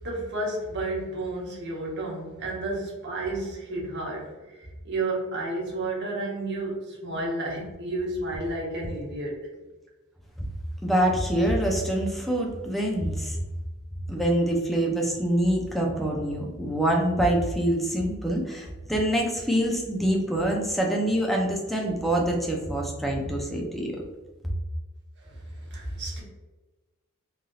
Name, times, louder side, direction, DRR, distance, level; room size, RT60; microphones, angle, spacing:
voice 1, 0.0-4.3 4.6-9.4 25.3-25.4 25.7-26.2, right 2 dB, 55° right, -3 dB, 0.9 m, -31 dB
voice 2, 10.8-13.4 14.1-23.9, right 1 dB, ahead, -1 dB, 0.5 m, -25 dB
3.2 x 2.6 x 2.3 m, 1.2 s
head